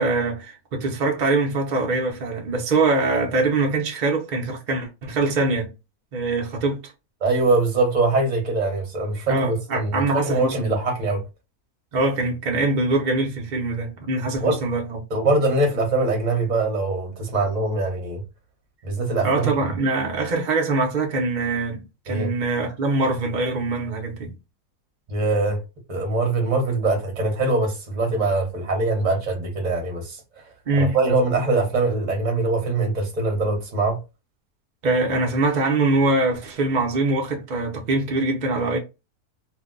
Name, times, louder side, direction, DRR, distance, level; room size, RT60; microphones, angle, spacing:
voice 1, 0.0-5.7 6.1-6.8 9.3-10.7 11.9-15.0 19.2-24.3 30.7-31.0 34.8-38.8, right 3 dB, 50° right, 0.5 m, -23 dB
voice 2, 7.2-11.2 14.4-14.6 15.1-18.2 18.8-19.5 22.1-22.3 25.1-25.6 25.9-30.4 30.8-34.0, right 2 dB, 35° right, 0.9 m, -23 dB
2.6 x 2.1 x 3.6 m
omnidirectional pair, 1.6 m